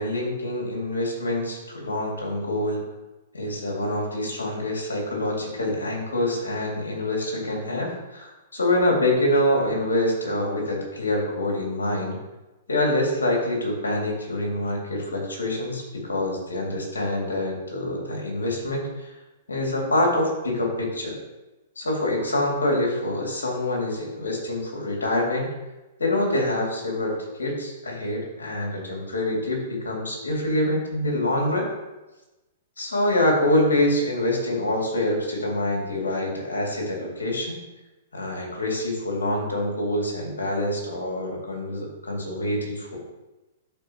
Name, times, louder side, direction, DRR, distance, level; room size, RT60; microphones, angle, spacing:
voice 1, 0.0-2.8 3.3-12.2 12.7-19.1 19.5-21.2 21.8-25.5 26.0-31.7 32.8-37.5 38.1-43.0, left 1 dB, 85° left, -1 dB, 2.3 m, -26 dB
11.0 x 4.3 x 2.9 m, 1.0 s
hypercardioid pair, 115°, 0 cm